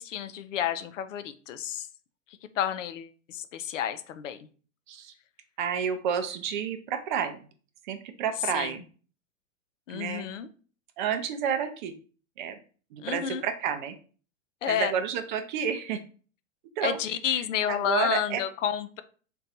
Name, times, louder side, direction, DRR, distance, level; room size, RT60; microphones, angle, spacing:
voice 1, 0.0-1.9 2.6-4.4 8.5-8.7 9.9-10.5 13.0-13.4 14.6-14.9 16.8-19.0, left 9 dB, 70° left, 10 dB, 0.5 m, -30 dB
voice 2, 5.6-7.4 7.8-8.9 9.9-10.3 11.0-11.9 12.4-12.6 12.9-14.0 14.7-16.0 16.8-17.0 17.3-18.4, right 8 dB, 40° right, 8 dB, 0.4 m, -30 dB
2.5 x 2.3 x 4.0 m, 0.40 s
hypercardioid pair, 110°, 39 cm